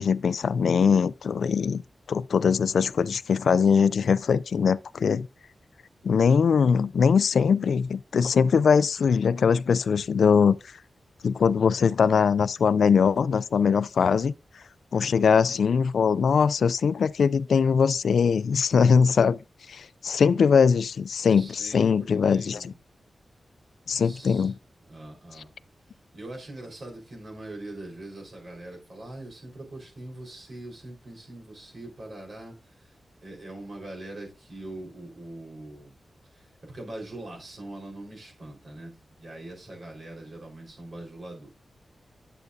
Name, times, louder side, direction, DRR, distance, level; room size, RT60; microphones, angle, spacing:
voice 1, 0.0-1.8 2.1-5.3 6.0-10.6 11.2-14.3 14.9-19.4 19.7-22.7 23.9-24.5, left 6 dB, 85° left, 0.3 m, -21 dB
voice 2, 21.3-22.8 24.0-24.5 24.9-25.5 26.1-32.5 33.2-35.9 36.3-38.9 39.2-41.5, right 1 dB, 50° right, 4.4 m, -42 dB
10.5 x 7.8 x 2.7 m
wide cardioid pair, 140°, 0 cm